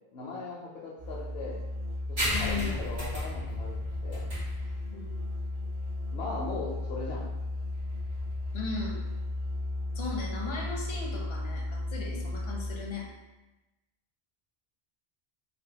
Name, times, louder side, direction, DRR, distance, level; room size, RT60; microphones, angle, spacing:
voice 1, 0.1-1.6 2.1-3.8 4.0-4.3 6.1-7.2 12.1-12.2, left 3 dB, 80° left, -5 dB, 0.8 m, -39 dB
Musical instrument, 1.0-13.0, left 2 dB, 50° right, 0.5 m, -35 dB
sound 1, 2.2-9.3, equal, 85° right, 1.6 m, -37 dB
voice 2, 2.3-2.8 4.9-5.2 8.5-9.0 9.9-13.1, left 4 dB, 40° left, -2 dB, 0.4 m, -37 dB
3.3 x 2.2 x 2.8 m, 1.0 s
omnidirectional pair, 1.0 m